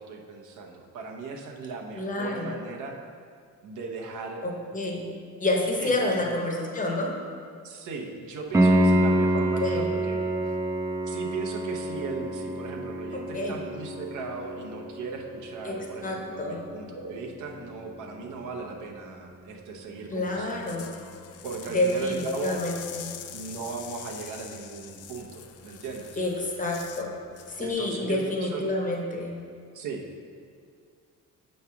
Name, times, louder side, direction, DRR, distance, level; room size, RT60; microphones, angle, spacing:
voice 1, 0.0-3.0 3.6-4.4 5.8-6.1 7.6-10.2 10.5-10.6 11.1-20.7 21.4-22.7 23.3-26.2 27.6-28.6 29.7-30.1, right 4 dB, 70° right, 2 dB, 0.8 m, -37 dB
voice 2, 2.0-2.5 4.4-5.1 5.4-7.1 9.3-9.9 13.1-13.6 15.6-15.8 16.0-16.8 20.1-20.9 21.7-23.1 26.2-27.1 27.5-29.4, left 2 dB, 25° left, 0 dB, 0.8 m, -29 dB
Piano, 8.5-19.2 22.5-22.6, right 1 dB, 10° right, 0.4 m, -28 dB
sound 1, 20.4-27.1 27.4-27.7, left 9 dB, 50° left, 0.4 m, -44 dB
6.8 x 3.2 x 5.7 m, 2.2 s
cardioid pair, 145°, 32 cm